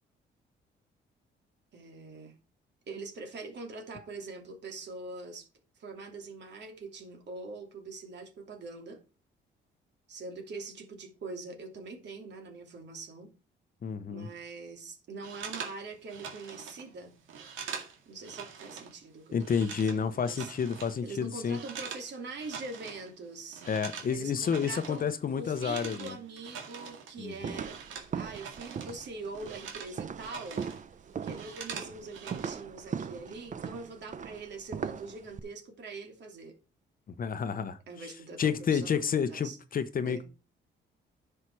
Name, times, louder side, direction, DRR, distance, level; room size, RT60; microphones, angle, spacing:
voice 1, 1.7-2.3 2.9-5.5 5.8-9.0 10.1-13.3 14.1-17.1 18.1-20.5 21.0-23.6 24.1-25.1 25.3-27.8 28.1-30.7 31.2-36.5 37.9-39.6 40.0-40.2, right 3 dB, 60° right, 2.8 m, -43 dB
voice 2, 13.8-14.3 19.3-21.6 23.6-26.2 27.2-27.6 37.2-38.1 38.4-40.2, left 7 dB, 45° left, 0.9 m, -30 dB
sound 1, 15.2-19.0 19.2-22.1 22.3-23.1 23.4-29.0 29.3-30.8 31.1-32.5, right 6 dB, 80° right, 2.1 m, -44 dB
sound 2, 27.4-35.4, right 7 dB, 40° right, 0.7 m, -39 dB
9.8 x 5.7 x 4.7 m
cardioid pair, 90°, 20 cm